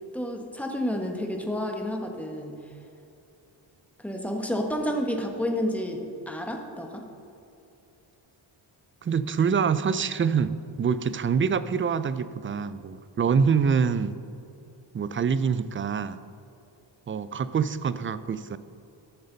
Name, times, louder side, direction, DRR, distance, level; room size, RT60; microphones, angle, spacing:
voice 1, 0.1-2.6 4.0-7.1, equal, 5° left, 2 dB, 1.4 m, -30 dB
voice 2, 9.0-14.1 14.9-16.2 17.1-18.6, right 6 dB, 30° right, 14 dB, 0.4 m, -25 dB
12.0 x 6.8 x 4.0 m, 2.7 s
cardioid pair, 70°, 49 cm